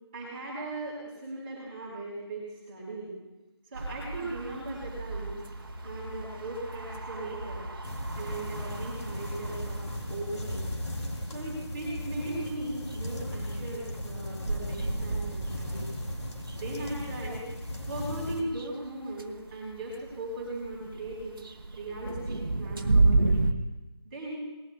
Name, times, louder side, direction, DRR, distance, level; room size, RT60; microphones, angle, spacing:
voice 1, 0.1-3.1 3.7-5.4 5.8-7.7 8.2-9.8 10.1-10.6 11.3-15.9 16.5-17.5 17.9-21.4 21.7-23.4 24.0-24.4, right 1 dB, 20° right, -6 dB, 4.1 m, -38 dB
sound 1, 3.7-23.5, right 3 dB, 50° right, 1.1 m, -33 dB
Musical instrument, 5.6-17.3, left 1 dB, 15° left, 4.7 m, -45 dB
sound 2, 7.8-18.4, left 1 dB, 80° left, 2.8 m, -37 dB
23.0 x 19.5 x 2.2 m, 1.1 s
figure-of-eight pair, 160°, 14 cm